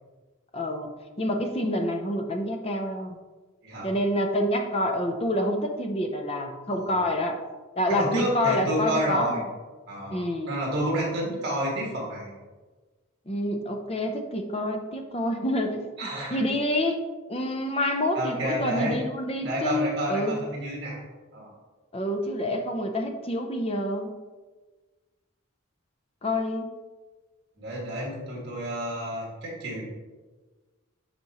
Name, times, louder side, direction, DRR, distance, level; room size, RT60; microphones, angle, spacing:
voice 1, 0.5-0.9 1.2-3.2 3.8-7.4 7.8-9.5 10.1-10.6 13.3-15.9 16.3-17.0 17.3-20.4 21.9-24.2 26.2-26.7, left 1 dB, 30° left, 4 dB, 0.6 m, -27 dB
voice 2, 6.7-7.1 7.9-9.4 9.9-10.2 10.5-12.3 16.0-16.4 18.1-19.0 19.4-21.0 21.3-21.5 27.6-29.8, right 1 dB, 55° right, -3 dB, 2.2 m, -30 dB
10.5 x 4.2 x 3.0 m, 1.3 s
head